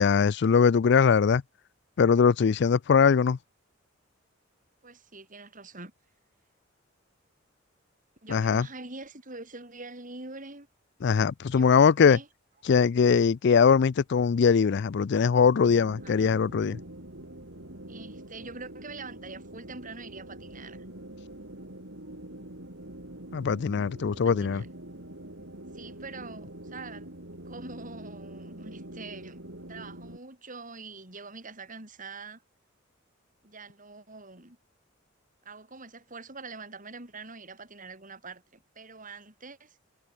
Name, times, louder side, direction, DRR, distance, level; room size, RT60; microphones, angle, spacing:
voice 1, 0.0-1.4 2.0-3.4 8.3-8.7 11.0-12.2 12.7-16.8 23.3-24.6, left 6 dB, 60° left, 0.4 m, -21 dB
voice 2, 4.8-5.9 8.2-10.7 11.5-12.3 16.0-16.2 17.9-20.8 24.1-24.7 25.7-27.1 27.4-29.4 29.7-32.4 33.4-34.6 35.4-39.8, right 3 dB, 45° right, 8.0 m, -44 dB
sound 1, 15.6-30.2, right 1 dB, 70° right, 4.7 m, -44 dB
head